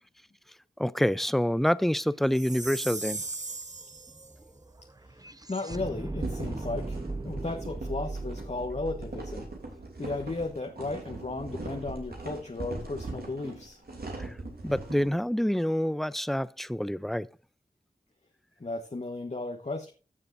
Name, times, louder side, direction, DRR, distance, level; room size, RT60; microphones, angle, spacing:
voice 1, 0.8-3.2 14.2-14.4 14.6-17.3, equal, ahead, 0.4 m, -27 dB
sound 1, 2.3-2.4 2.6-10.9, right 2 dB, 25° right, 0.8 m, -39 dB
Chime, 2.3-4.3, right 3 dB, 50° right, 1.6 m, -37 dB
voice 2, 5.0-9.5 10.0-13.8 18.6-19.9, left 2 dB, 45° left, 1.3 m, -35 dB
sound 2, 6.2-15.1, right 2 dB, 80° right, 3.0 m, -40 dB
15.0 x 7.0 x 2.6 m
cardioid pair, 40°, 16 cm